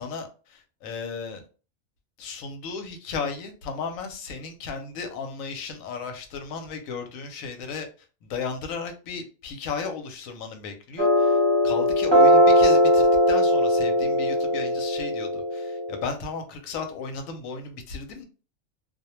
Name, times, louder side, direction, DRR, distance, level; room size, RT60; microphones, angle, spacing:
voice 1, 0.0-1.4 2.2-7.9 8.2-11.4 11.6-18.3, left 5 dB, 85° left, 1.0 m, -35 dB
sound 1, 11.0-16.0, equal, 20° right, 0.9 m, -20 dB
2.3 x 2.1 x 2.9 m
omnidirectional pair, 1.4 m